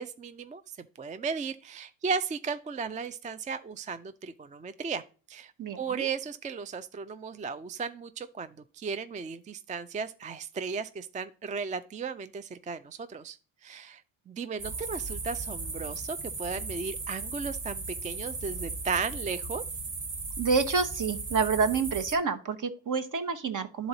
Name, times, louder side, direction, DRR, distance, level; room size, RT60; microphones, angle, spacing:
voice 1, 0.0-5.0 5.3-13.4 13.6-14.0 14.3-19.6, right 5 dB, 20° right, 12 dB, 0.3 m, -35 dB
voice 2, 5.6-6.1 20.4-23.9, right 5 dB, 45° right, 8 dB, 1.1 m, -28 dB
night ambient, 14.6-22.1, right 3 dB, 70° right, 2.5 m, -37 dB
11.0 x 4.0 x 3.9 m, 0.36 s
cardioid pair, 80°, 44 cm